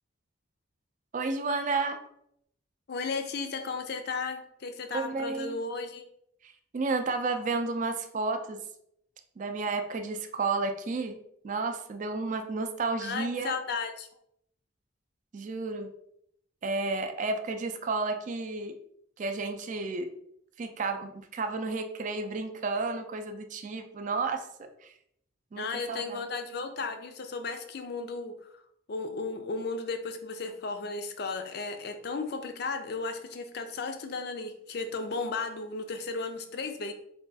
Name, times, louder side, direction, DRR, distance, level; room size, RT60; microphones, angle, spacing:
voice 1, 1.1-2.0 4.9-5.6 6.4-8.6 9.4-11.2 11.4-13.6 15.3-15.9 16.6-18.7 19.2-20.1 20.6-24.9 25.5-26.2, right 3 dB, 40° right, 6 dB, 0.4 m, -32 dB
voice 2, 2.9-6.0 13.0-14.1 25.5-28.5 28.9-36.9, left 4 dB, 55° left, 7 dB, 0.4 m, -35 dB
3.3 x 2.3 x 4.0 m, 0.73 s
head